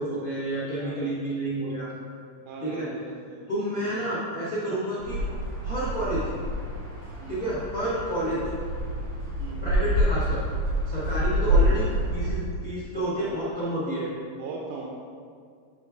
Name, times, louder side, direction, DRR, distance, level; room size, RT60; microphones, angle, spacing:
voice 1, 0.0-1.9 2.6-2.9 3.5-5.2 5.6-6.2 7.3-8.4 9.6-10.4 10.8-11.9 12.1-14.1, right 1 dB, 85° left, -9 dB, 0.7 m, -30 dB
voice 2, 2.5-3.4 3.8-4.1 7.2-7.5 9.4-9.7 11.5-11.8 12.9-13.4 14.3-14.9, right 4 dB, 90° right, -2 dB, 2.6 m, -40 dB
sound 1, 5.0-12.3, equal, 50° right, 1.1 m, -27 dB
9.6 x 4.5 x 3.6 m, 2.2 s
omnidirectional pair, 4.4 m